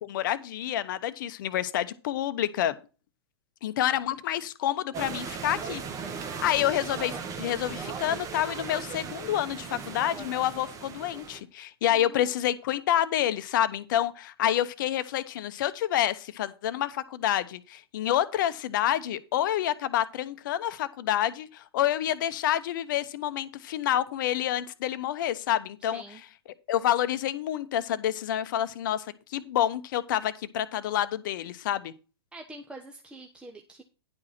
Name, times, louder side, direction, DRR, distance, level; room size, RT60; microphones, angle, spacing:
voice 1, 0.0-2.7 3.6-5.8 6.3-26.0 26.7-31.9, left 12 dB, 50° left, 0.9 m, -28 dB
sound 1, 4.9-11.4, right 6 dB, 25° right, 1.4 m, -37 dB
voice 2, 11.9-12.3 25.8-26.2 32.3-33.8, right 1 dB, 5° right, 1.0 m, -45 dB
10.5 x 4.9 x 5.8 m
figure-of-eight pair, 105°, 13 cm